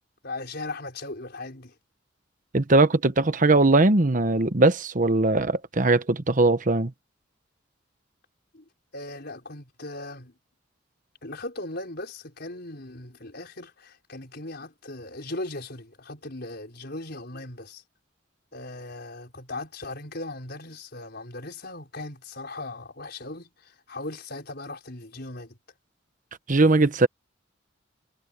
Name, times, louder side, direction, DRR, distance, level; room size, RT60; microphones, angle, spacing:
voice 1, 0.2-1.7 8.5-8.6 8.9-10.3 11.2-17.8 18.5-25.6, left 2 dB, 60° left, 5.4 m, -38 dB
voice 2, 2.5-6.9 26.5-27.1, right 2 dB, 45° right, 1.1 m, -20 dB
head